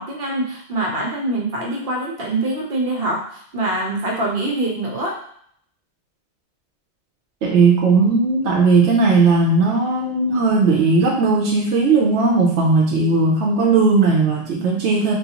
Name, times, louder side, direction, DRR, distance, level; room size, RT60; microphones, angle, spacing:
voice 1, 0.0-5.1, right 2 dB, 60° right, -2 dB, 1.0 m, -24 dB
voice 2, 7.4-15.1, right 3 dB, 85° right, -1 dB, 0.9 m, -17 dB
3.7 x 2.4 x 2.9 m, 0.64 s
omnidirectional pair, 1.1 m